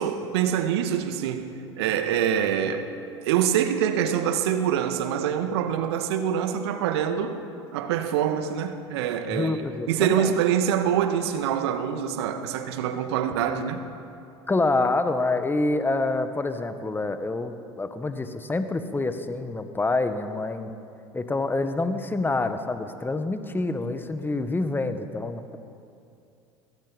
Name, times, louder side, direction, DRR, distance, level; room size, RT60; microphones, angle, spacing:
voice 1, 0.0-1.5 1.8-2.9 3.2-7.4 7.7-9.6 9.9-13.8, right 9 dB, 65° right, 1.8 m, -25 dB
voice 2, 9.3-10.3 14.5-20.7 21.1-25.6, left 2 dB, 15° left, 1.7 m, -27 dB
22.5 x 22.0 x 5.4 m
figure-of-eight pair, 70°, 15 cm